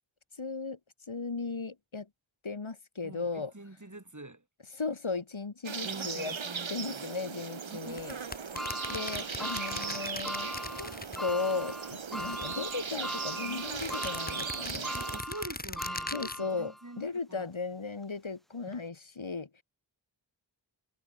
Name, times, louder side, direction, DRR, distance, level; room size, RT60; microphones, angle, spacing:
voice 1, 0.4-0.8 1.1-2.1 2.4-3.5 4.7-6.3 6.7-8.2 8.9-10.9 11.2-14.9 16.1-19.6, left 4 dB, 90° left, 3.7 m, -36 dB
voice 2, 3.0-4.4 5.8-7.3 7.7-8.1 8.5-8.6 12.1-12.4 14.7-17.5, right 2 dB, 40° right, 7.1 m, -46 dB
sound 1, 5.6-15.2, right 6 dB, 80° right, 1.3 m, -38 dB
sound 2, 7.9-11.7 12.0-13.1 13.6-16.4, left 2 dB, 20° left, 1.2 m, -41 dB
sound 3, 8.6-16.9 17.4-17.5 18.7-18.8, equal, ahead, 0.8 m, -40 dB
wide cardioid pair, 50°, 46 cm